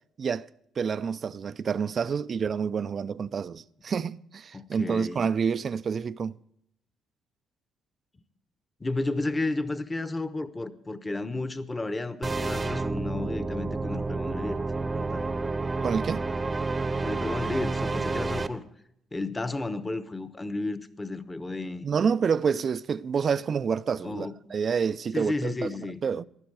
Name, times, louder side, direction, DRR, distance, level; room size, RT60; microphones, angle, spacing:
voice 1, 0.8-6.4 15.8-16.3 21.8-26.2, right 6 dB, 45° right, 0.4 m, -28 dB
voice 2, 4.5-5.3 8.8-14.6 14.9-15.3 17.0-18.6 19.1-21.9 24.0-24.3 25.1-26.0, left 2 dB, 20° left, 1.0 m, -32 dB
sound 1, 12.2-18.5, right 3 dB, 25° right, 0.8 m, -30 dB
15.5 x 11.5 x 4.7 m
supercardioid pair, 75°, 0 cm